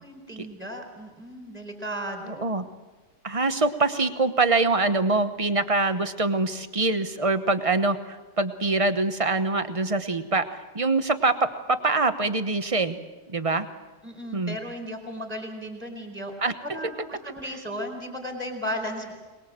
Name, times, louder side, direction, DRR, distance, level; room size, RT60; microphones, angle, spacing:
voice 1, 0.0-2.5 14.0-16.3 16.6-19.1, equal, 5° right, 2 dB, 4.5 m, -35 dB
voice 2, 3.2-13.0 13.3-13.7 14.3-14.6 16.4-16.5, right 3 dB, 25° right, 9 dB, 0.8 m, -24 dB
23.0 x 21.5 x 7.6 m, 1.2 s
omnidirectional pair, 1.9 m